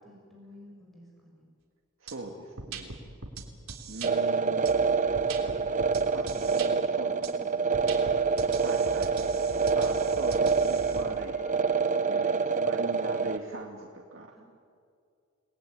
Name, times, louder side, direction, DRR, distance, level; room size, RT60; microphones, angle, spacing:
voice 1, 0.0-1.4 6.3-8.1 11.7-12.2 14.3-14.4, left 1 dB, ahead, -2 dB, 5.7 m, -54 dB
voice 2, 2.0-3.0 3.9-4.7 6.1-7.6 8.6-9.2 9.7-11.8 12.1-14.3, right 2 dB, 60° right, 1 dB, 2.3 m, -41 dB
sound 1, 2.1-2.2 2.6-4.1 4.7-6.7 7.2-7.3 7.7-11.0, right 4 dB, 80° right, 3.5 m, -41 dB
sound 2, 4.0-13.4, right 5 dB, 35° right, 0.7 m, -26 dB
sound 3, 8.6-13.7, left 1 dB, 35° left, 3.1 m, -52 dB
30.0 x 20.0 x 9.7 m, 2.3 s
head